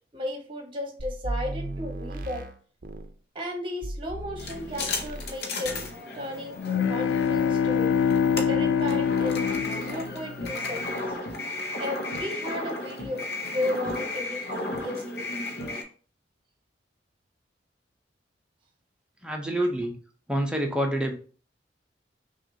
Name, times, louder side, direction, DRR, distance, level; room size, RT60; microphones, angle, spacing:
voice 1, 0.1-2.5 3.3-7.9 8.5-11.0 11.8-15.3, left 1 dB, 30° right, 3 dB, 1.0 m, -34 dB
sound 1, 1.0-3.1 3.8-5.4 5.6-6.0, right 1 dB, 50° right, 0.5 m, -36 dB
sound 2, 4.4-15.8, left 2 dB, 60° left, 0.8 m, -34 dB
sound 3, 6.6-10.6, left 7 dB, 80° left, 0.3 m, -25 dB
voice 2, 19.2-19.9 20.3-21.1, right 1 dB, 5° right, 2 dB, 0.6 m, -27 dB
5.8 x 2.4 x 2.7 m, 0.40 s
head